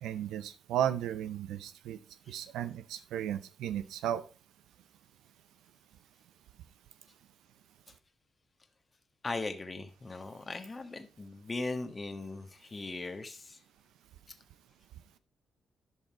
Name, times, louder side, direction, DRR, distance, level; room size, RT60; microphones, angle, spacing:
voice 1, 0.0-2.0 2.3-4.2, right 10 dB, 80° right, 13 dB, 0.5 m, -34 dB
voice 2, 9.2-13.6, left 3 dB, 35° left, 7 dB, 1.3 m, -39 dB
11.0 x 5.4 x 4.6 m, 0.33 s
hypercardioid pair, 45°, 0 cm